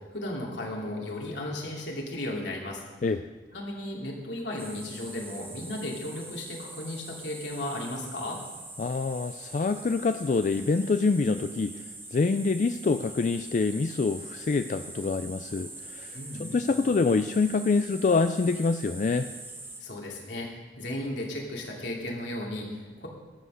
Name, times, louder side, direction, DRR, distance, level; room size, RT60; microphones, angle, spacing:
voice 1, 0.0-2.8 3.5-8.4 16.1-16.7 19.8-23.1, left 1 dB, 80° left, -2 dB, 2.8 m, -35 dB
sound 1, 4.6-19.8, right 2 dB, 10° right, 1.1 m, -43 dB
voice 2, 8.8-11.8 12.1-19.3, left 4 dB, 45° left, 9 dB, 0.3 m, -26 dB
13.0 x 7.9 x 6.4 m, 1.3 s
head